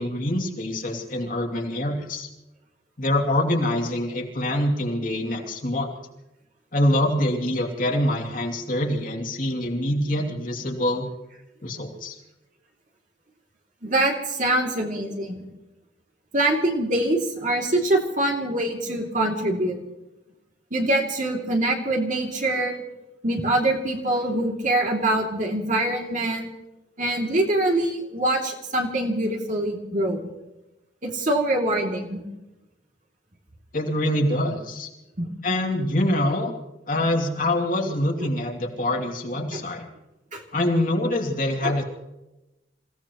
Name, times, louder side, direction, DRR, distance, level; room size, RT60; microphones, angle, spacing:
voice 1, 0.0-2.3 3.0-5.9 6.7-11.1 11.6-12.1 33.7-34.9 35.4-36.5 36.9-39.8 40.5-41.8, left 1 dB, 50° left, 1 dB, 2.7 m, -25 dB
voice 2, 13.8-15.4 16.3-19.8 20.7-22.8 23.2-26.5 27.0-30.2 31.0-32.2 35.2-35.3 38.2-38.3 40.3-40.4 41.6-41.8, right 1 dB, 45° right, 1 dB, 2.8 m, -24 dB
28.0 x 17.0 x 3.1 m, 0.97 s
head